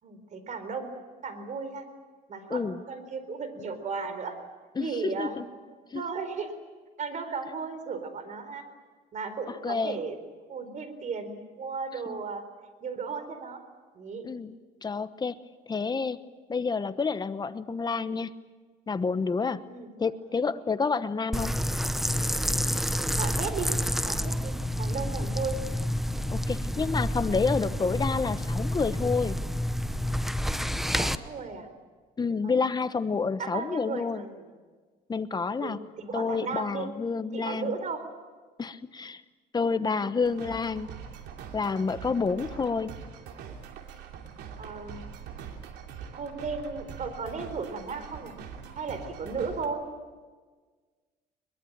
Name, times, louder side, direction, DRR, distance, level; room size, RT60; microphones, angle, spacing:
voice 1, 0.0-0.9 1.2-1.9 2.3-4.3 4.8-5.4 5.9-6.5 7.0-8.6 9.1-10.2 10.5-12.4 12.8-13.6 13.9-14.3 19.7-20.4 23.2-23.7 24.0-24.5 24.8-25.6 30.9-31.7 32.4-32.6 33.4-34.5 35.6-36.9 37.3-38.0 40.0-40.1 44.6-45.0 46.1-48.3 48.8-49.8, right 5 dB, 45° right, 10 dB, 4.2 m, -35 dB
voice 2, 2.5-2.8 4.8-5.5 5.9-6.0 9.6-10.0 12.1-12.2 14.2-14.5 14.8-15.4 15.7-16.2 16.5-18.3 18.9-19.6 20.0-21.6 26.3-29.4 32.2-34.2 35.1-35.8 36.1-37.7 38.6-39.2 39.5-40.9 41.5-42.9, left 4 dB, 25° left, 12 dB, 1.1 m, -29 dB
sound 1, 21.3-31.2, equal, ahead, 0.9 m, -29 dB
sound 2, 40.2-49.7, right 7 dB, 85° right, 2.9 m, -43 dB
22.5 x 22.0 x 8.9 m, 1.4 s
cardioid pair, 110°, 17 cm